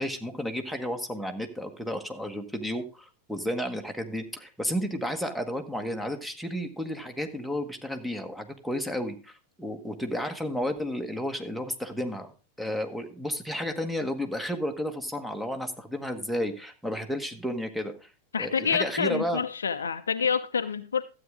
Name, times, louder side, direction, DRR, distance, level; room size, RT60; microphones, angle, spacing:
voice 1, 0.0-12.3 12.6-18.1 18.4-19.4, equal, ahead, 1.3 m, -32 dB
voice 2, 18.3-21.0, left 6 dB, 70° left, 0.6 m, -27 dB
12.5 x 8.5 x 3.6 m
figure-of-eight pair, 90°, 0 cm